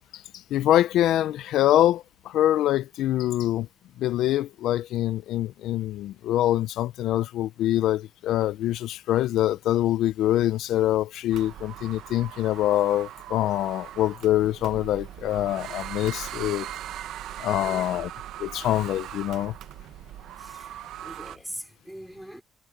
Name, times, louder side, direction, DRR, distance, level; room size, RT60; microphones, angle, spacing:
voice 1, 0.1-3.7 4.0-16.7 17.4-18.1 18.4-19.5, left 13 dB, 85° left, 0.4 m, -24 dB
sound 1, 11.3-21.4, right 12 dB, 75° right, 0.7 m, -39 dB
voice 2, 17.5-17.9 20.4-20.7 21.0-22.4, equal, 5° right, 4.8 m, -41 dB
cardioid pair, 160°, 0 cm